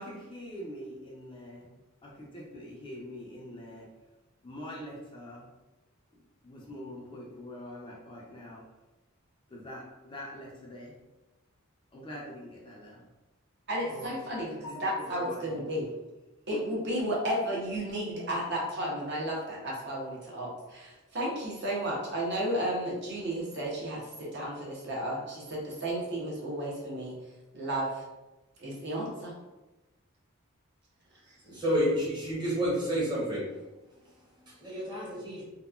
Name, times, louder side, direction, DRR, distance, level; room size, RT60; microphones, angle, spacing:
voice 1, 0.0-3.9 4.4-5.5 6.1-8.6 9.5-10.9 11.9-13.1 13.8-15.6 16.5-16.6, equal, 25° left, -3 dB, 0.5 m, -44 dB
voice 2, 13.7-14.5 14.8-15.9 16.5-27.2 27.5-28.0 28.6-29.3, right 1 dB, 55° right, -4 dB, 0.8 m, -33 dB
voice 3, 31.4-33.5 33.9-35.4, equal, 20° right, -6 dB, 0.8 m, -30 dB
2.9 x 2.2 x 2.3 m, 1.1 s
head